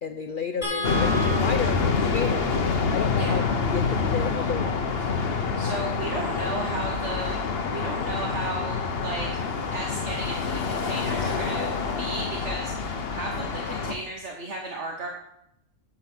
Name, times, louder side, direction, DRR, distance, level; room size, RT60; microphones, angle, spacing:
voice 1, 0.0-2.5 2.9-3.4 3.7-5.1, left 6 dB, 90° left, 9 dB, 0.4 m, -32 dB
sound 1, 0.6-6.9 8.5-8.6 9.0-9.1, equal, 30° left, 3.5 m, -37 dB
sound 2, 0.8-13.9, left 5 dB, 50° left, 1.0 m, -27 dB
voice 2, 5.6-7.4 7.7-9.4 9.7-11.7 12.0-15.1, right 2 dB, 55° right, 1 dB, 1.3 m, -34 dB
8.7 x 7.6 x 5.9 m, 0.80 s
omnidirectional pair, 1.5 m